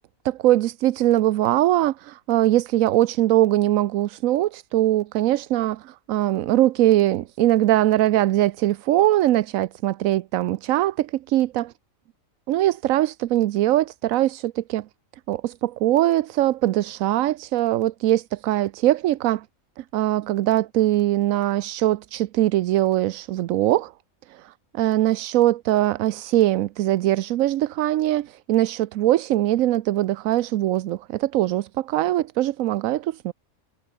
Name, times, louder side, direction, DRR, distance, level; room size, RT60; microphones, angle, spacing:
voice 1, 0.2-11.7 12.5-14.9 15.3-19.5 19.8-23.9 24.8-33.3, right 14 dB, 80° right, 1.0 m, -21 dB
omnidirectional pair, 1.4 m